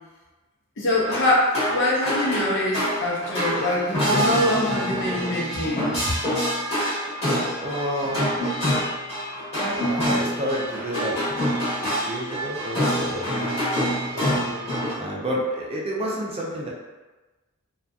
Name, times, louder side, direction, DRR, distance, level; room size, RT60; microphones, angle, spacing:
voice 1, 0.8-6.0, left 1 dB, 60° left, -5 dB, 0.7 m, -24 dB
sound 1, 1.0-14.9, equal, 30° left, 1.1 m, -26 dB
voice 2, 7.6-8.3 9.5-11.2 11.8-14.4 15.0-16.7, equal, 25° right, -4 dB, 0.4 m, -30 dB
2.6 x 2.4 x 2.2 m, 1.2 s
head